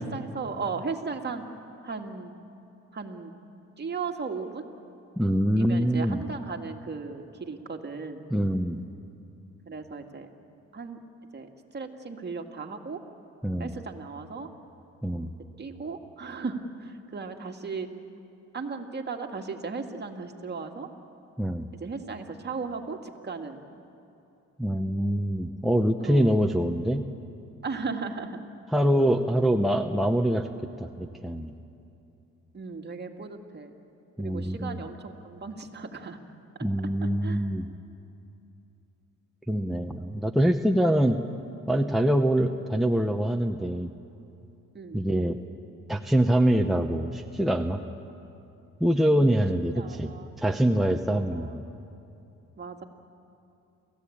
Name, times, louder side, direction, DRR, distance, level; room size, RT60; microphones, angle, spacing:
voice 1, 0.0-1.4 1.8-2.3 2.9-3.3 3.8-4.7 5.6-8.2 9.7-10.3 10.7-11.0 11.3-13.0 13.6-14.5 15.6-17.9 18.5-20.9 21.7-23.6 26.0-26.3 27.6-28.4 29.9-30.1 32.5-33.7 34.2-36.2 37.0-37.4 44.7-45.1 49.1-49.5 49.8-50.4 51.1-51.5 52.6-52.8, right 4 dB, 35° right, 3 dB, 2.1 m, -36 dB
voice 2, 5.2-6.2 8.3-8.8 13.4-13.7 15.0-15.3 21.4-21.7 24.6-27.1 28.7-30.5 30.8-31.5 34.2-34.8 36.6-37.7 39.5-41.2 41.7-43.9 44.9-45.4 45.9-47.8 48.8-50.1 50.4-51.6, right 1 dB, ahead, 3 dB, 0.9 m, -24 dB
29.0 x 15.0 x 8.6 m, 2.7 s
cardioid pair, 90°, 30 cm